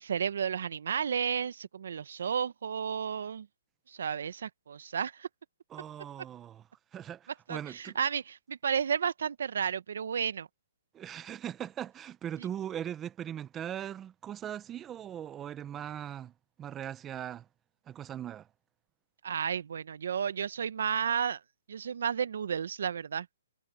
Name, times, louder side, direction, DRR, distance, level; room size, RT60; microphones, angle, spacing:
voice 1, 0.0-3.5 3.9-5.3 7.5-10.5 19.2-21.4 21.7-23.3, right 7 dB, 65° right, 1.0 m, -32 dB
voice 2, 5.7-6.6 6.9-8.0 10.9-16.3 16.6-17.5 17.9-18.5, right 10 dB, 15° right, 0.8 m, -40 dB
hypercardioid pair, 155°, 0 cm